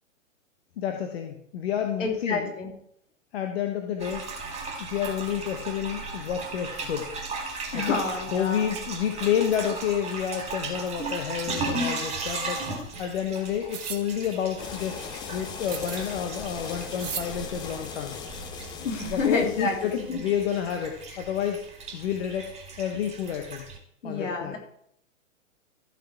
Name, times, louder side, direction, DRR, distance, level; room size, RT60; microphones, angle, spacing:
voice 1, 0.8-2.5 3.3-4.2 4.8-7.1 7.7-8.0 8.3-12.6 13.0-15.0 15.3-18.2 18.8-21.6 21.9-23.6 24.0-24.6, left 9 dB, 50° left, 4 dB, 1.2 m, -29 dB
voice 2, 2.0-2.7 7.7-8.7 18.8-20.2 21.1-21.2 24.0-24.6, left 4 dB, 65° left, 1 dB, 3.2 m, -29 dB
sound 1, 4.0-23.8, right 3 dB, 15° right, 2.1 m, -37 dB
sound 2, 13.7-14.0 15.7-16.1 17.0-17.3, right 8 dB, 70° right, 1.4 m, -35 dB
sound 3, 14.6-20.1, left 6 dB, 10° left, 0.5 m, -39 dB
14.0 x 5.9 x 4.4 m, 0.72 s
figure-of-eight pair, 115°, 40 cm